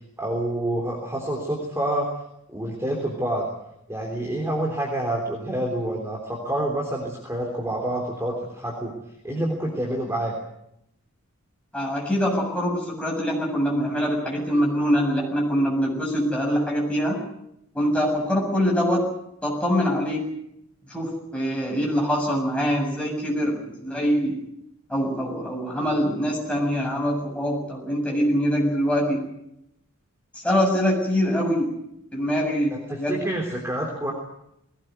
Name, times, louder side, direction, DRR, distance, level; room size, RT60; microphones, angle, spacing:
voice 1, 0.2-2.1 2.5-3.5 3.9-8.9 9.2-10.4 32.7-34.1, right 1 dB, 10° right, -1 dB, 3.4 m, -27 dB
voice 2, 11.7-17.2 17.7-19.1 19.4-20.3 20.9-24.4 24.9-29.2 30.3-31.8 32.1-33.2, equal, 5° left, -2 dB, 7.2 m, -24 dB
20.5 x 18.0 x 9.4 m, 0.80 s
head